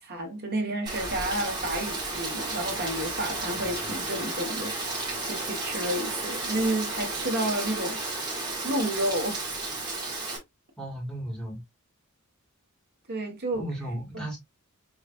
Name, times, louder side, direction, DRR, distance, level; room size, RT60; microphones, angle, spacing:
voice 1, 0.0-8.0 8.6-9.5 13.1-13.6 14.1-14.4, right 1 dB, 45° right, 1.4 m, -31 dB
Rain, 0.9-10.4, right 2 dB, 20° right, 1.5 m, -33 dB
voice 2, 10.8-11.6 13.5-14.4, right 1 dB, 5° left, 1.9 m, -35 dB
4.9 x 3.1 x 2.4 m
head